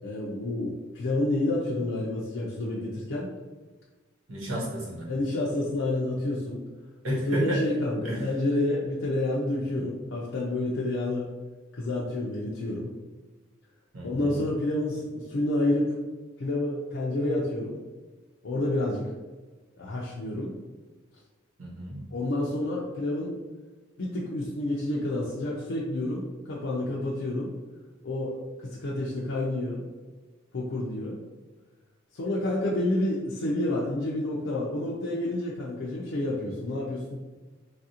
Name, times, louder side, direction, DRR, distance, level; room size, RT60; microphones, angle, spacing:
voice 1, 0.0-3.3 5.1-6.6 7.1-11.3 11.7-12.9 14.0-15.9 16.4-17.8 18.4-19.0 19.8-20.5 22.1-23.3 24.0-27.5 28.0-28.3 28.6-29.8 30.5-31.2 32.1-37.2, left 1 dB, 65° left, -5 dB, 0.4 m, -29 dB
voice 2, 4.3-5.1 7.0-7.6 8.0-8.2 13.9-14.4 21.6-22.0, right 1 dB, 90° right, -5 dB, 1.2 m, -31 dB
3.3 x 2.4 x 2.8 m, 1.3 s
head